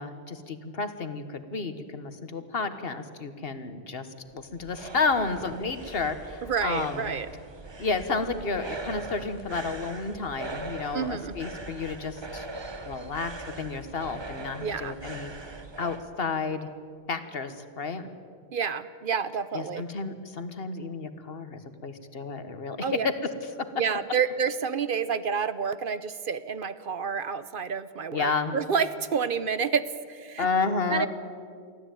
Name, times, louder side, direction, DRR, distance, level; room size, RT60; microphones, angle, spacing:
voice 1, 0.0-7.1 7.8-12.5 12.9-15.3 15.8-16.7 17.1-18.1 19.5-23.1 23.6-23.7 28.1-28.6 30.4-31.1, left 4 dB, 65° left, 10 dB, 1.5 m, -31 dB
sound 1, 4.2-16.0, right 2 dB, 25° right, 1.0 m, -41 dB
voice 2, 6.4-7.3 10.9-11.3 14.6-14.9 18.5-19.8 22.8-23.1 23.8-30.5 30.9-31.1, right 6 dB, 55° right, 14 dB, 0.9 m, -29 dB
24.5 x 15.0 x 9.1 m, 2.2 s
omnidirectional pair, 1.1 m